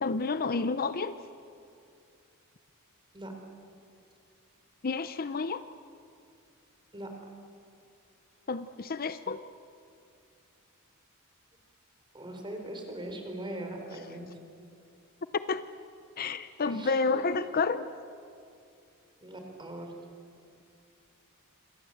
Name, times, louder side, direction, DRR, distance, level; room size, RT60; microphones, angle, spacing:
voice 1, 0.0-1.2 4.8-5.6 8.5-9.4 15.3-15.7 16.2-17.9, left 4 dB, 40° left, 12 dB, 0.7 m, -30 dB
voice 2, 12.1-14.3 16.7-17.0 19.2-19.9, right 1 dB, 20° right, 3 dB, 4.5 m, -40 dB
27.5 x 26.5 x 7.9 m, 2.5 s
head